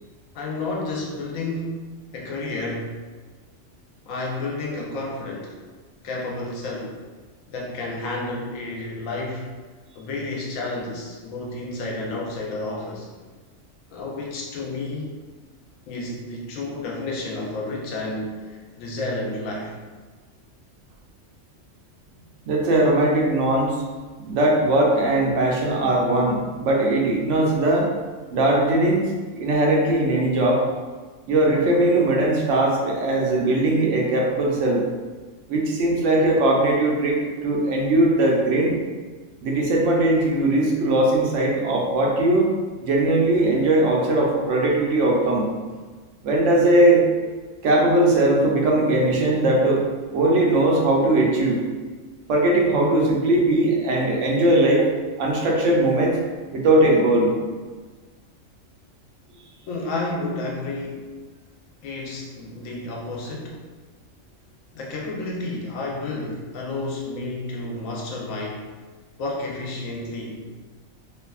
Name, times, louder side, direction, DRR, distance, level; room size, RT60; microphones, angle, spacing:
voice 1, 0.3-2.9 4.1-5.5 6.0-6.9 7.5-9.5 10.0-13.1 13.9-15.2 15.9-19.7 59.7-61.1 61.8-63.6 64.7-68.7 69.2-70.4, left 2 dB, 90° left, -2 dB, 1.0 m, -31 dB
voice 2, 22.5-23.7 24.2-27.9 28.3-29.0 29.3-30.6 31.3-34.8 35.5-38.7 39.4-42.5 42.8-45.5 46.2-47.0 47.6-49.8 50.1-51.6 52.3-54.8 55.2-56.2 56.5-57.3, right 1 dB, 70° right, -1 dB, 0.9 m, -19 dB
2.6 x 2.4 x 2.2 m, 1.4 s
omnidirectional pair, 1.3 m